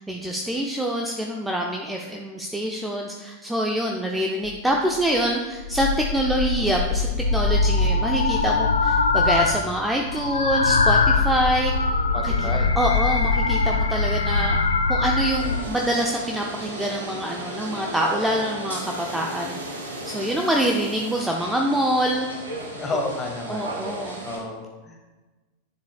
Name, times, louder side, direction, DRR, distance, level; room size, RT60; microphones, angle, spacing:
voice 1, 0.0-11.7 12.2-12.5 12.8-14.6 14.9-19.6 20.1-22.3 23.5-24.2, right 1 dB, 5° right, 0 dB, 0.6 m, -25 dB
sound 1, 4.4-4.5 4.9-5.2 5.6-9.7 10.0-15.6, left 3 dB, 75° left, 0.5 m, -22 dB
voice 2, 12.1-12.7 22.7-25.0, left 2 dB, 20° left, 1 dB, 1.6 m, -32 dB
sound 2, 15.3-24.4, right 1 dB, 75° right, 2.1 m, -35 dB
10.0 x 7.4 x 2.3 m, 1.2 s
figure-of-eight pair, 90°, 0 cm